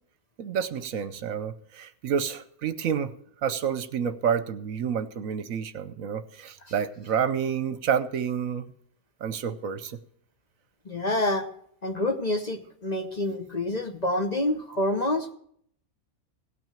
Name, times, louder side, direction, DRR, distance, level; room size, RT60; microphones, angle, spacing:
voice 1, 0.4-3.1 3.4-8.7 9.2-10.0, right 7 dB, 70° right, 13 dB, 1.1 m, -29 dB
voice 2, 10.9-11.5 11.8-15.3, left 1 dB, 35° left, 6 dB, 0.9 m, -27 dB
17.0 x 6.1 x 8.8 m, 0.65 s
omnidirectional pair, 1.5 m